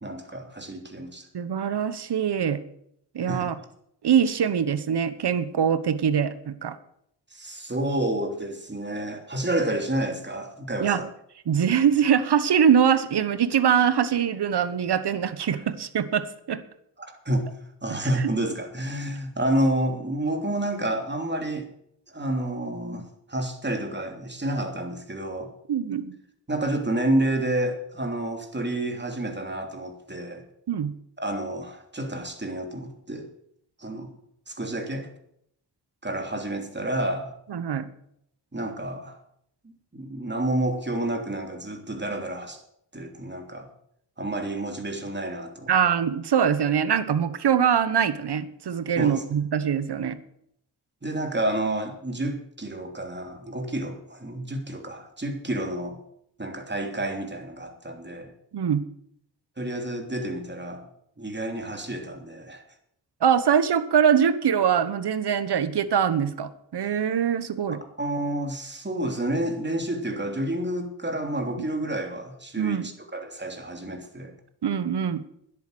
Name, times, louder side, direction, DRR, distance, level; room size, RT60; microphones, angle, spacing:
voice 1, 0.0-1.3 3.3-3.5 7.3-11.1 17.0-17.5 17.8-21.7 22.1-25.5 26.5-30.4 31.2-33.3 33.8-34.1 34.5-35.1 36.0-37.3 38.5-39.2 39.9-42.6 42.9-43.7 44.2-45.7 49.0-49.2 51.0-56.0 56.4-58.3 59.6-60.9 61.2-62.6 68.0-74.3, right 1 dB, 25° right, 3.0 m, -29 dB
voice 2, 1.3-2.6 3.1-3.5 4.0-6.8 10.8-11.0 11.5-16.6 18.0-18.3 25.7-26.1 30.7-30.9 37.5-37.9 45.7-50.2 58.5-58.8 63.2-67.8 72.6-72.8 74.6-75.2, right 8 dB, 60° right, 1.2 m, -23 dB
10.5 x 8.8 x 7.9 m
cardioid pair, 50°, 45 cm